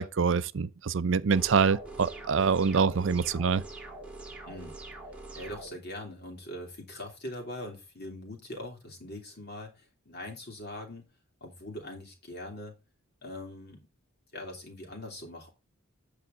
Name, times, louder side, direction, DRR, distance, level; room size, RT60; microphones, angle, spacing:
voice 1, 0.0-3.6, right 5 dB, 60° right, 0.5 m, -25 dB
sound 1, 1.3-5.7, right 2 dB, 5° right, 1.7 m, -44 dB
voice 2, 4.5-4.8 5.3-11.1 11.4-12.8 13.2-13.9 14.3-15.5, left 1 dB, 50° left, 3.0 m, -42 dB
8.6 x 6.8 x 3.7 m
head